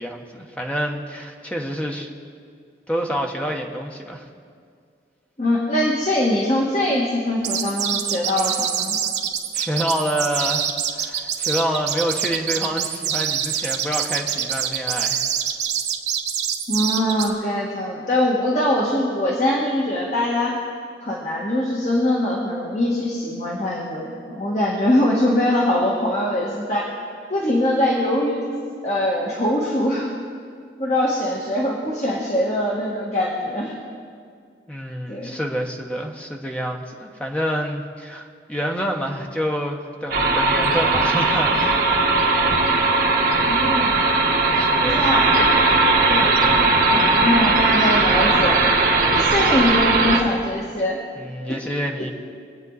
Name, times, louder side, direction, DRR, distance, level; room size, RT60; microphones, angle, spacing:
voice 1, 0.0-2.1 2.9-4.2 9.5-15.3 34.7-41.9 44.5-45.4 46.2-46.6 49.2-49.4 51.1-52.1, equal, 5° left, 1 dB, 1.1 m, -27 dB
voice 2, 5.4-9.0 16.7-20.6 21.0-26.9 27.3-28.5 28.8-30.1 30.8-33.8 35.1-35.3 43.3-43.9 44.8-45.3 46.1-48.7 49.1-51.0, left 1 dB, 40° left, -4 dB, 1.7 m, -22 dB
sound 1, 7.4-17.3, right 8 dB, 70° right, 1.1 m, -25 dB
sound 2, 40.1-50.2, right 3 dB, 55° right, 1.5 m, -18 dB
24.0 x 8.8 x 4.1 m, 2.2 s
head